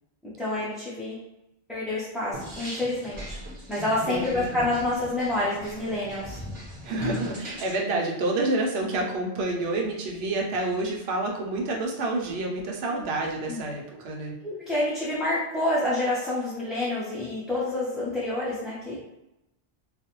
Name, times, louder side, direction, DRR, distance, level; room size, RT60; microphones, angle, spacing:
voice 1, 0.2-1.2 1.7-3.4 3.7-6.4 13.5-13.6 14.4-19.0, left 1 dB, ahead, -10 dB, 0.3 m, -28 dB
sound 1, 2.3-7.8, left 1 dB, 30° right, 0.7 m, -39 dB
voice 2, 4.1-4.7 6.8-14.3, right 2 dB, 70° right, -1 dB, 0.8 m, -28 dB
2.4 x 2.0 x 2.9 m, 0.92 s
omnidirectional pair, 1.1 m